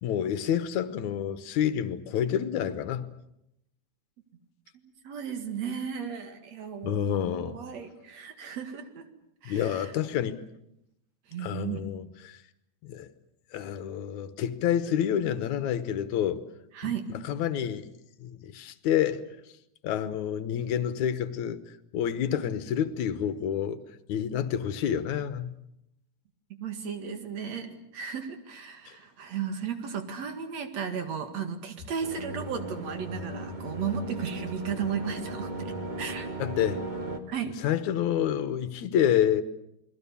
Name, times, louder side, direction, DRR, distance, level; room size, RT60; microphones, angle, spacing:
voice 1, 0.0-3.1 6.8-7.6 9.5-10.4 11.4-12.4 12.8-13.1 13.5-16.4 17.3-17.9 18.2-19.2 19.8-21.6 21.9-23.8 24.1-25.6 28.9-29.0 36.4-36.8 37.6-39.4, left 9 dB, 70° left, 2.4 m, -28 dB
voice 2, 5.0-9.1 9.4-9.9 11.3-11.9 16.7-17.1 26.5-36.3 37.3-37.6, right 7 dB, 60° right, 3.1 m, -35 dB
sound 1, 32.0-37.2, right 1 dB, 25° right, 1.1 m, -36 dB
29.0 x 21.0 x 7.1 m
omnidirectional pair, 3.7 m